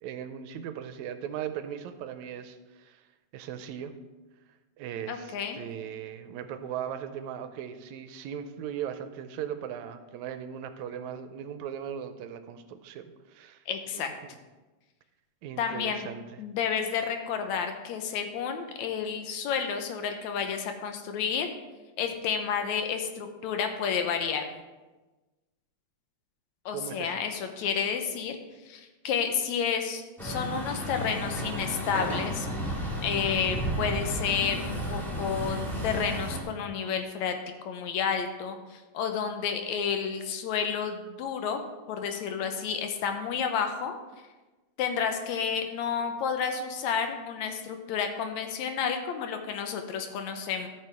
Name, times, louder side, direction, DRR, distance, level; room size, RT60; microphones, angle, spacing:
voice 1, 0.0-3.0 3.3-3.9 4.8-13.6 13.9-14.4 15.4-16.3 26.7-27.1, right 9 dB, 80° right, 9 dB, 1.9 m, -38 dB
voice 2, 5.1-5.6 13.7-14.1 15.6-16.1 16.4-21.5 22.0-24.4 26.7-28.4 28.7-32.5 33.0-35.6 35.8-37.4 37.6-41.6 41.9-43.9 44.8-50.7, left 7 dB, 75° left, 6 dB, 2.1 m, -30 dB
Truck, 30.2-36.4, equal, ahead, 1.7 m, -32 dB
13.5 x 6.8 x 3.4 m, 1.2 s
omnidirectional pair, 3.4 m